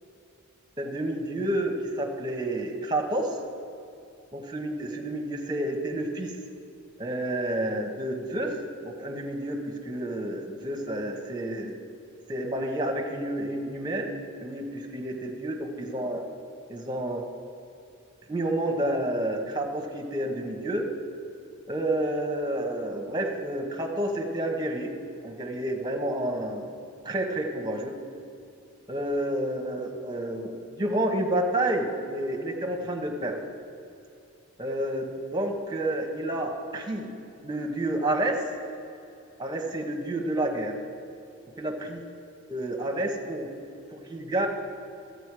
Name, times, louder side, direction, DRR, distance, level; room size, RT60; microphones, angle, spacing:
voice 1, 0.8-3.3 4.3-6.4 7.0-8.6 8.8-11.7 12.3-14.1 14.4-16.2 16.7-17.2 18.3-20.9 21.7-24.9 25.2-26.8 27.0-27.9 28.9-33.4 34.6-37.1 37.4-38.5 39.4-40.7 41.6-42.0 42.5-43.5 43.9-44.5, right 1 dB, 20° right, 1 dB, 1.1 m, -29 dB
13.5 x 8.1 x 4.8 m, 2.6 s
head